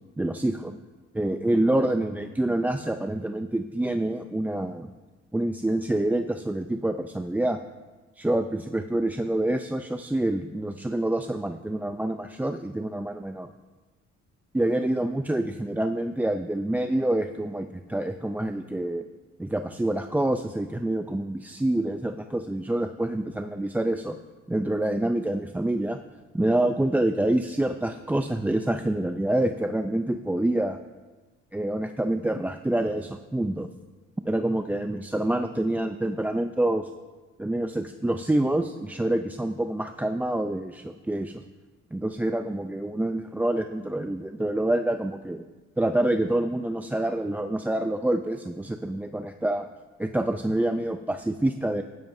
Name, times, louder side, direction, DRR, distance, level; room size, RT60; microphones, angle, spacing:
voice 1, 0.2-0.8 1.1-4.9 5.3-7.6 8.2-13.5 14.5-19.0 19.4-24.2 24.5-26.0 26.3-30.8 31.5-33.7 34.2-36.9 37.4-41.4 41.9-45.5 45.8-49.6 50.0-51.8, right 1 dB, 5° right, 7 dB, 0.4 m, -27 dB
15.0 x 10.5 x 2.6 m, 1.3 s
cardioid pair, 90°, 30 cm